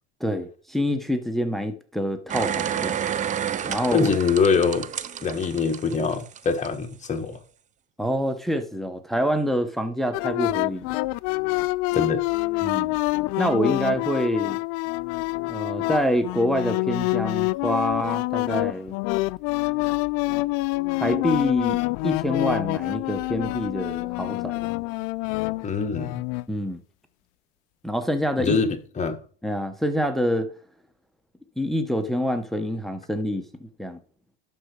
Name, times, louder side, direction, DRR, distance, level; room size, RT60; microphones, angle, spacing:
voice 1, 0.2-3.0 3.7-4.1 8.0-11.0 12.6-13.0 13.4-14.6 15.5-18.9 21.0-24.7 26.5-26.8 27.8-28.6 29.4-30.5 31.6-34.0, equal, ahead, 1.0 m, -26 dB
sound 1, 2.3-6.7 7.0-7.1, right 9 dB, 25° right, 0.5 m, -30 dB
voice 2, 3.9-4.9 5.2-7.4 11.9-12.2 25.6-26.2 28.4-29.2, left 5 dB, 25° left, 1.5 m, -24 dB
sound 2, 10.1-26.5, left 23 dB, 65° left, 0.5 m, -26 dB
11.5 x 4.5 x 6.7 m
supercardioid pair, 125°, 29 cm